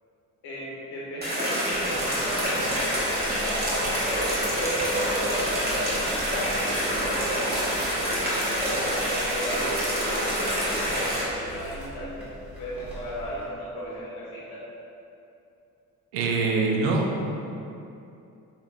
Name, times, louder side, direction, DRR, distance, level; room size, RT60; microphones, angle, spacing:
voice 1, 0.4-3.7 4.5-8.3 8.6-12.3 12.6-14.6, equal, 65° left, -6 dB, 1.1 m, -35 dB
sound 1, 1.2-11.2, equal, 25° right, 1.2 m, -27 dB
sound 2, 1.7-13.4, equal, ahead, 1.2 m, -40 dB
voice 2, 16.1-17.4, right 3 dB, 65° right, 0 dB, 0.6 m, -24 dB
3.5 x 3.5 x 2.3 m, 2.7 s
hypercardioid pair, 45°, 42 cm